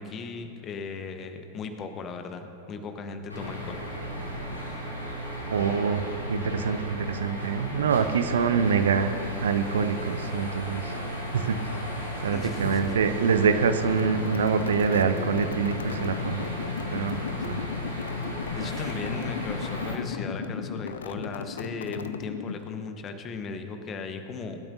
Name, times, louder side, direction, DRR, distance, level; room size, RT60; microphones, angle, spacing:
voice 1, 0.0-3.8 12.3-12.9 18.5-24.7, left 4 dB, 30° left, 7 dB, 1.2 m, -37 dB
sound 1, 3.3-20.0, equal, 85° left, 3.0 m, -34 dB
voice 2, 5.5-6.0 6.3-9.1 9.4-10.8 11.3-11.6 12.2-16.4 16.9-17.2 17.5-17.6, right 6 dB, 65° right, 10 dB, 0.7 m, -25 dB
sound 2, 12.8-13.1 13.5-13.8 14.5-14.6 14.8-14.9 15.2-15.5 16.4-16.5 16.8-16.9 17.1-17.2 17.4-17.8 18.2-18.5, right 2 dB, 35° right, 3.4 m, -47 dB
sound 3, 13.8-22.8, left 7 dB, 65° left, 0.6 m, -36 dB
23.0 x 12.0 x 2.7 m, 2.9 s
figure-of-eight pair, 90°, 0 cm